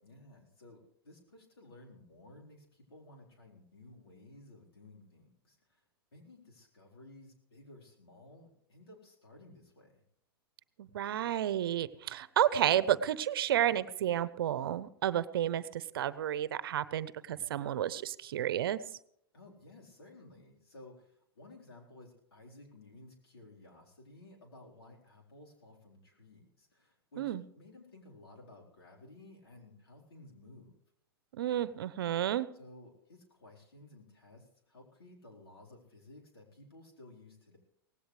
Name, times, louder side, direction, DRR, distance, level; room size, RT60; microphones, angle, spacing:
voice 1, 0.0-5.8 6.1-10.0 17.3-17.5 19.3-30.8 32.5-37.6, left 2 dB, 80° left, -1 dB, 4.2 m, -56 dB
voice 2, 10.8-18.8 27.2-27.4 31.3-32.5, right 11 dB, 70° right, 17 dB, 0.8 m, -31 dB
18.0 x 16.5 x 3.3 m, 0.70 s
hypercardioid pair, 105°, 13 cm